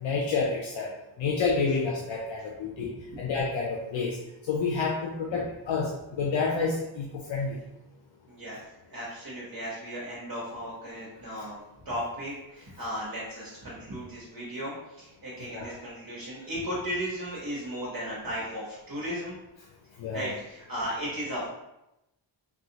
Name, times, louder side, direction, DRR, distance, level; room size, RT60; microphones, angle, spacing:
voice 1, 0.0-0.9 1.2-2.9 3.2-4.2 4.5-5.9 6.2-7.5 15.5-15.7 20.0-20.3, left 4 dB, 75° left, -2 dB, 0.6 m, -29 dB
voice 2, 2.8-3.2 8.3-19.4 20.1-21.5, equal, 50° right, -6 dB, 0.9 m, -36 dB
3.6 x 2.4 x 2.8 m, 0.91 s
wide cardioid pair, 125°, 47 cm